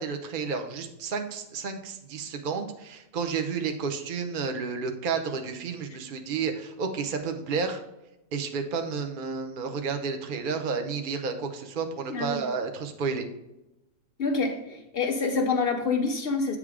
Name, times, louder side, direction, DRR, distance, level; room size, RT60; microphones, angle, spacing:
voice 1, 0.0-7.8 8.3-13.3, right 5 dB, 60° right, 5 dB, 0.5 m, -31 dB
voice 2, 12.1-12.4 14.2-16.6, left 4 dB, 90° left, 3 dB, 0.5 m, -27 dB
8.4 x 3.6 x 4.8 m, 0.91 s
omnidirectional pair, 2.0 m